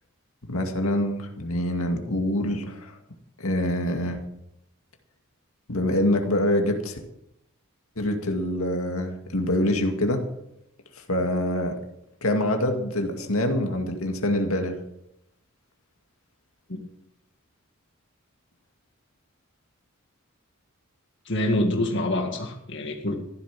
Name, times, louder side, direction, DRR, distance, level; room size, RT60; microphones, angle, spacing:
voice 1, 0.5-3.0 3.4-4.2 5.7-7.0 8.0-10.2 10.9-11.8 12.2-14.8, left 1 dB, 80° left, 4 dB, 2.2 m, -25 dB
voice 2, 21.3-23.1, left 1 dB, 55° left, 2 dB, 2.0 m, -26 dB
15.0 x 12.0 x 6.0 m, 0.80 s
head